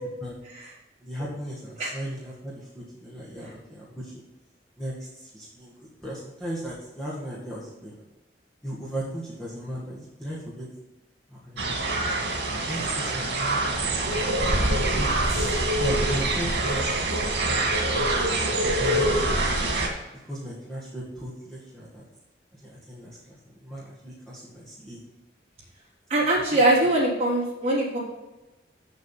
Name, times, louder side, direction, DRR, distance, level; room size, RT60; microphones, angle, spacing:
voice 1, 1.0-4.2 4.8-8.0 8.6-10.7 11.3-12.0 12.6-13.9 14.9-18.1 18.7-19.7 20.3-22.0 22.6-25.0 26.5-26.6, equal, 5° left, -8 dB, 1.9 m, -37 dB
sound 1, 11.6-19.9, right 2 dB, 85° right, 2.1 m, -25 dB
voice 2, 26.1-28.0, right 1 dB, 35° right, -6 dB, 3.6 m, -22 dB
8.0 x 7.0 x 5.7 m, 1.1 s
head